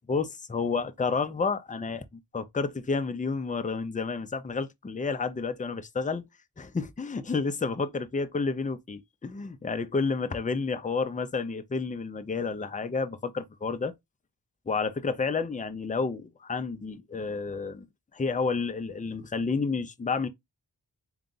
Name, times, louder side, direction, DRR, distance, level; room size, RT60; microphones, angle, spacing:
voice 1, 0.1-2.0 2.3-6.2 6.6-13.9 14.7-17.9 18.1-20.3, left 4 dB, 20° left, 0.5 m, -30 dB
3.8 x 2.3 x 3.8 m
wide cardioid pair, 75°, 42 cm